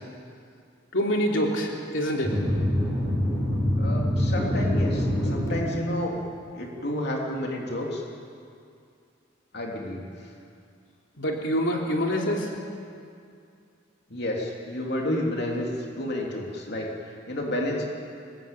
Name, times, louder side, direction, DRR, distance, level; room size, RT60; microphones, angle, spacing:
voice 1, 0.9-2.4 11.2-12.5, equal, 75° left, 0 dB, 3.2 m, -26 dB
sound 1, 2.2-5.5, equal, 15° left, 7.7 m, -25 dB
voice 2, 3.8-6.1 6.5-8.0 9.5-10.1 14.1-17.9, left 1 dB, 55° left, -1 dB, 3.2 m, -30 dB
25.0 x 20.0 x 9.2 m, 2.4 s
head